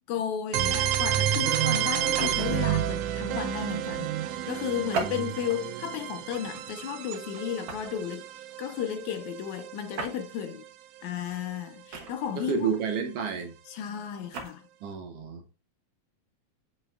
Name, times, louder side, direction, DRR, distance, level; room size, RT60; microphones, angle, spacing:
voice 1, 0.1-4.1 4.5-8.3 8.6-10.6 11.0-12.7 13.7-14.6, left 9 dB, 80° left, 2.3 m, -34 dB
sound 1, 0.5-10.3, right 11 dB, 85° right, 2.1 m, -30 dB
sound 2, 2.0-2.7 4.9-5.7 6.3-6.5 7.7-8.0 9.9-10.2 11.9-12.5 14.1-14.5, right 4 dB, 55° right, 1.7 m, -35 dB
voice 2, 12.4-13.5 14.8-15.5, right 6 dB, 70° right, 1.6 m, -30 dB
8.4 x 5.6 x 2.3 m
omnidirectional pair, 3.3 m